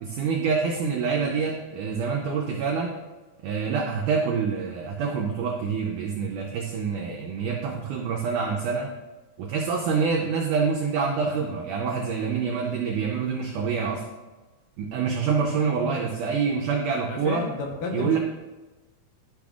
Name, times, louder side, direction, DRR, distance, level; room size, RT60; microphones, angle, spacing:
voice 1, 0.0-3.0 3.4-8.9 9.4-14.0 14.8-17.5 17.9-18.2, right 5 dB, 85° right, 1 dB, 1.8 m, -26 dB
voice 2, 15.7-16.1 17.0-18.2, left 4 dB, 80° left, 1 dB, 2.0 m, -32 dB
12.0 x 6.1 x 2.4 m, 1.2 s
omnidirectional pair, 4.6 m